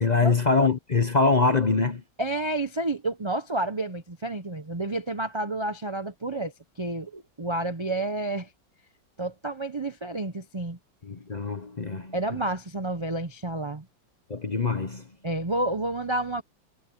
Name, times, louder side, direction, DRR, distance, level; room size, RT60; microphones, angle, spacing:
voice 1, 0.0-2.0 11.0-12.4 14.3-15.1, left 4 dB, 35° left, 0.7 m, -24 dB
voice 2, 2.2-8.5 9.2-10.8 12.1-13.9 15.2-16.4, right 2 dB, 45° right, 0.3 m, -30 dB
omnidirectional pair, 1.9 m